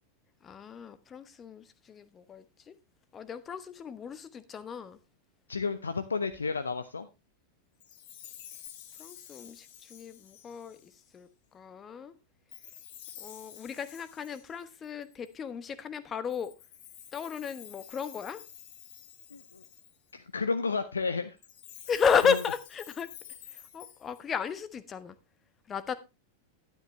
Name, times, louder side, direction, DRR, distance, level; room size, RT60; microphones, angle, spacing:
voice 1, 0.4-2.8 3.1-5.0 9.0-11.3 11.5-12.1 13.2-16.5 17.1-18.4 21.9-23.1 23.5-25.1 25.7-25.9, left 6 dB, 25° left, 1.0 m, -33 dB
voice 2, 5.5-7.1 19.3-19.6 20.1-21.4 22.3-22.4, left 4 dB, 75° left, 0.6 m, -31 dB
Chime, 7.8-11.1 12.5-15.3 16.3-20.1 21.4-24.5, left 10 dB, 50° left, 1.5 m, -50 dB
11.5 x 9.9 x 3.1 m
figure-of-eight pair, 90°, 0 cm